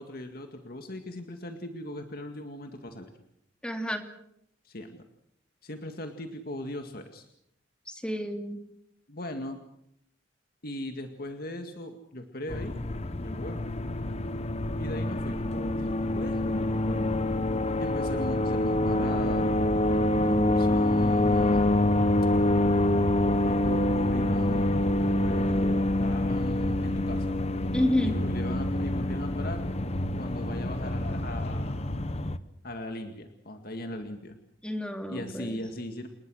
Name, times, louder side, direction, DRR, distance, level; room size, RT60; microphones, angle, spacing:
voice 1, 0.0-3.1 4.6-5.1 5.6-7.3 9.1-9.6 10.6-12.7 13.2-13.6 14.8-17.3 17.5-21.7 23.2-24.8 25.2-27.4 28.0-29.6 30.2-32.0 32.6-34.4 35.1-36.1, left 1 dB, 55° left, 5 dB, 2.1 m, -38 dB
voice 2, 3.6-4.0 8.0-8.6 27.7-28.2 34.6-35.6, left 1 dB, 5° left, 5 dB, 2.6 m, -29 dB
sound 1, 12.5-32.4, left 1 dB, 35° left, 1.1 m, -26 dB
29.5 x 20.0 x 6.4 m, 0.73 s
head